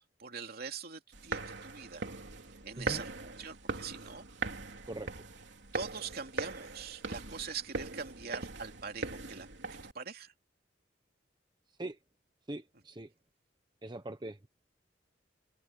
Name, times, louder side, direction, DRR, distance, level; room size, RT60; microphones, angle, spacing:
voice 1, 0.2-2.1 2.6-3.1 3.4-4.2 5.7-9.5 9.9-10.3, right 5 dB, 55° right, 3.0 m, -42 dB
sound 1, 1.1-9.9, right 3 dB, 70° right, 3.4 m, -40 dB
voice 2, 11.7-12.0 12.5-13.1 13.8-14.5, right 1 dB, 25° right, 0.9 m, -42 dB
head